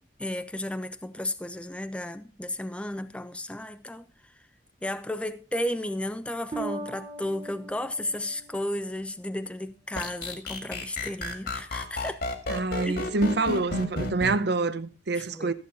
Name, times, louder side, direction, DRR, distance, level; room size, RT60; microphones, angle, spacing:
voice 1, 0.2-4.3 4.8-12.2 12.8-13.0 15.1-15.5, left 1 dB, 5° left, 0.5 m, -33 dB
Bass guitar, 6.5-9.5, right 3 dB, 25° right, 1.0 m, -40 dB
sound 1, 10.0-14.3, left 2 dB, 65° left, 2.0 m, -31 dB
voice 2, 12.5-15.5, right 3 dB, 70° right, 0.8 m, -26 dB
13.5 x 7.8 x 4.1 m
head